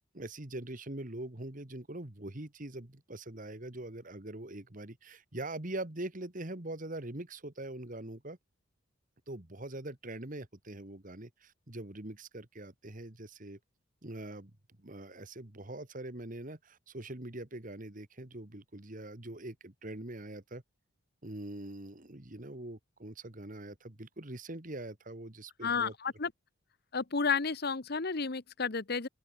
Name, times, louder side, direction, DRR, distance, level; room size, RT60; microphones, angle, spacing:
voice 1, 0.1-8.4 9.3-13.6 14.0-14.5 14.8-20.6 21.2-25.9, right 1 dB, 40° right, 1.8 m, -43 dB
voice 2, 25.6-26.3 26.9-29.1, left 5 dB, 50° left, 1.0 m, -32 dB
open air
head